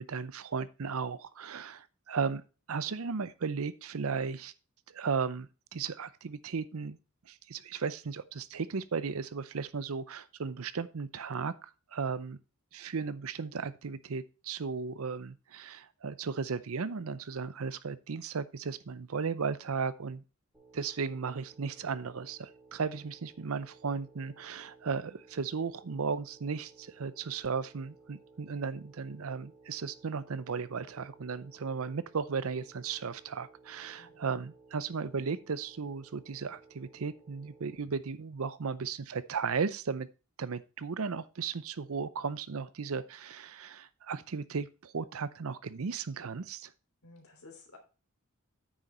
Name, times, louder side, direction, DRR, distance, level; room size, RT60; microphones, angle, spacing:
voice 1, 0.0-2.4 2.7-4.5 4.9-7.0 7.3-12.4 12.7-20.2 20.7-40.1 40.4-46.7, right 5 dB, 70° right, 16 dB, 0.6 m, -35 dB
sound 1, 20.5-37.8, right 3 dB, 5° right, 2.9 m, -59 dB
voice 2, 34.0-34.3 47.0-47.8, left 3 dB, 75° left, 4 dB, 3.1 m, -54 dB
9.2 x 6.4 x 4.3 m, 0.33 s
head